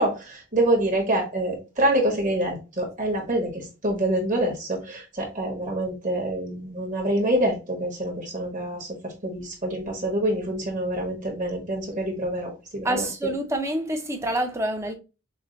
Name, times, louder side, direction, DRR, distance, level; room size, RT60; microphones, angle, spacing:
voice 1, 0.0-13.1, right 1 dB, 35° right, 1.4 m, -26 dB
voice 2, 12.8-14.9, right 1 dB, 15° right, 0.6 m, -27 dB
5.9 x 2.2 x 2.6 m
head